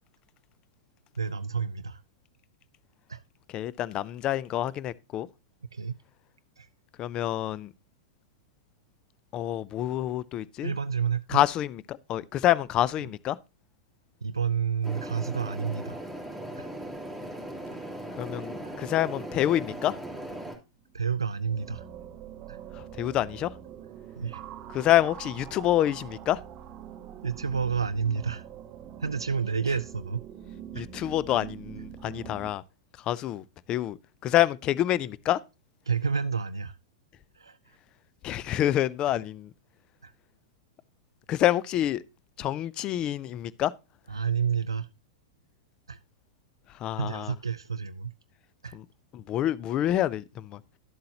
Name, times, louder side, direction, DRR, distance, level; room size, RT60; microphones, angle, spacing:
voice 1, 1.2-2.0 3.1-3.2 5.7-6.0 6.6-6.7 10.6-11.4 14.2-16.0 16.6-16.7 18.6-18.7 20.9-21.8 22.5-22.6 24.2-24.4 27.2-28.4 29.0-30.2 30.7-30.9 35.9-36.8 37.4-37.6 40.0-40.1 44.1-44.9 45.9-46.0 47.0-48.1 48.6-48.8, right 6 dB, 90° right, 0.4 m, -29 dB
voice 2, 3.5-5.3 7.0-7.7 9.3-10.7 11.3-13.4 18.2-19.9 23.0-23.5 24.7-26.4 30.7-32.6 33.1-34.0 34.2-35.4 38.2-39.5 41.3-42.0 42.4-43.7 46.8-47.3 48.7-48.8 49.1-50.6, left 13 dB, 35° left, 0.5 m, -27 dB
sound 1, 14.8-20.6, right 1 dB, 10° left, 2.9 m, -38 dB
sound 2, 20.9-32.5, right 9 dB, 35° right, 0.8 m, -44 dB
12.0 x 7.6 x 2.8 m
hypercardioid pair, 100°, 2 cm